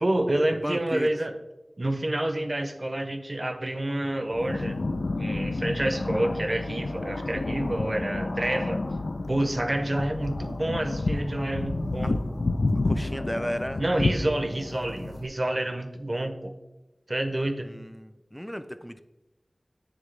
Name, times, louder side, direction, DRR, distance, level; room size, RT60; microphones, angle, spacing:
voice 1, 0.0-1.3 1.8-4.8 5.2-8.8 9.3-12.2 13.8-16.5 17.1-17.7, right 1 dB, 45° right, 7 dB, 0.6 m, -28 dB
voice 2, 0.6-1.1 12.0-12.1 12.8-13.8 17.6-19.0, equal, 5° left, 11 dB, 0.4 m, -34 dB
sound 1, 4.3-15.3, left 2 dB, 90° left, 0.4 m, -30 dB
9.0 x 3.6 x 3.2 m, 1.0 s
wide cardioid pair, 50°, 0 cm